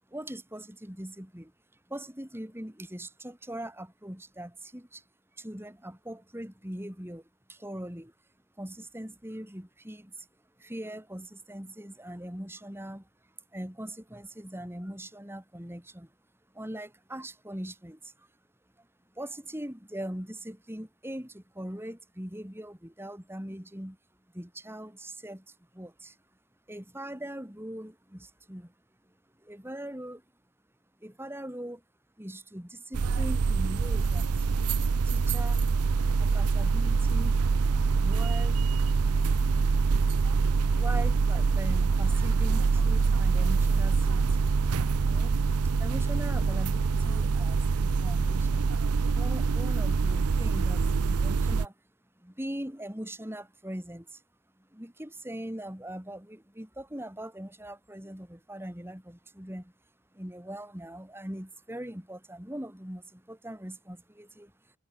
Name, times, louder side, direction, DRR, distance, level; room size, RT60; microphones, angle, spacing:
voice 1, 0.1-1.5 1.9-5.0 5.4-7.2 7.5-8.1 8.6-10.3 10.6-13.1 13.5-16.1 16.5-18.3 18.8-18.9 19.1-24.0 24.3-26.2 26.7-28.7 29.4-30.2 31.0-31.8 32.2-34.5 35.1-35.6 36.2-37.3 38.0-38.6 40.8-44.5 45.0-45.4 45.8-48.7 49.1-51.7 52.2-54.2 54.6-59.7 60.1-64.5, right 1 dB, 10° right, 3.4 m, -41 dB
sound 1, 32.9-51.6, right 4 dB, 90° right, 0.6 m, -25 dB
head